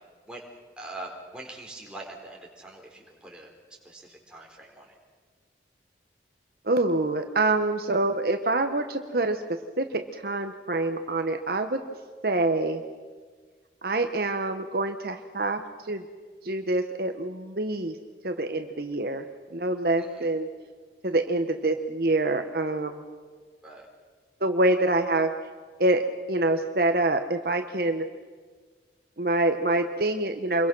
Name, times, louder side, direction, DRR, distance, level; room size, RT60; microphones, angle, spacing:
voice 1, 0.8-3.5 3.8-4.9 20.0-20.3 23.6-23.9, right 2 dB, 5° right, -1 dB, 4.2 m, -43 dB
voice 2, 6.6-9.4 9.8-11.8 12.2-12.8 13.8-16.0 16.4-18.0 18.2-19.2 19.5-20.5 21.0-23.0 24.4-25.3 25.8-26.0 26.3-28.1 29.2-30.7, right 2 dB, 55° right, 6 dB, 1.1 m, -26 dB
27.5 x 22.5 x 6.2 m, 1.5 s
head